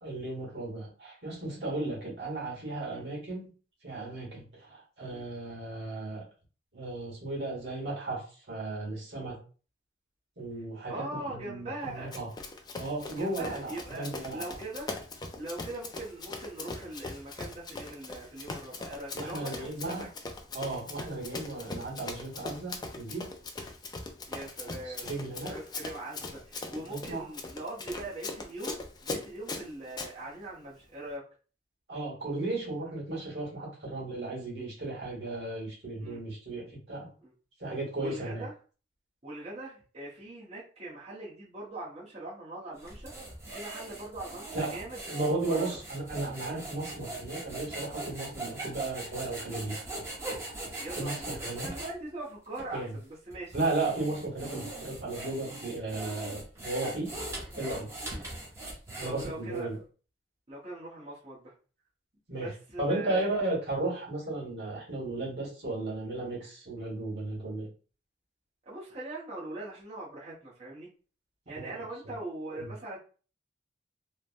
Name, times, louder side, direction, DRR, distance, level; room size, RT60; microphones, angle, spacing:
voice 1, 0.0-3.5 3.8-6.2 6.7-9.4 10.4-12.3 12.8-14.5 19.1-20.1 20.5-23.3 24.6-25.5 26.8-27.2 31.9-37.1 37.6-38.4 44.5-44.7 45.1-49.8 51.0-51.7 52.7-52.9 53.5-57.1 57.6-57.9 59.0-59.8 62.3-62.5 62.8-67.7 71.6-71.8 72.0-72.1 72.6-72.7, right 2 dB, 70° right, -3 dB, 1.4 m, -35 dB
voice 2, 10.9-12.1 13.1-15.0 15.4-20.1 24.3-25.1 25.4-31.3 36.0-36.2 37.2-37.3 38.0-38.5 39.2-43.1 43.5-45.6 50.8-53.5 58.0-58.2 59.0-59.7 60.5-61.5 62.3-63.3 68.6-70.9 71.5-73.0, right 2 dB, 35° right, -8 dB, 0.9 m, -41 dB
Run, 12.1-30.1, left 3 dB, 25° left, 0.3 m, -40 dB
sound 1, 42.8-51.9 52.5-52.7 53.3-59.6, right 2 dB, 15° right, 0.7 m, -40 dB
3.2 x 2.1 x 2.5 m, 0.37 s
head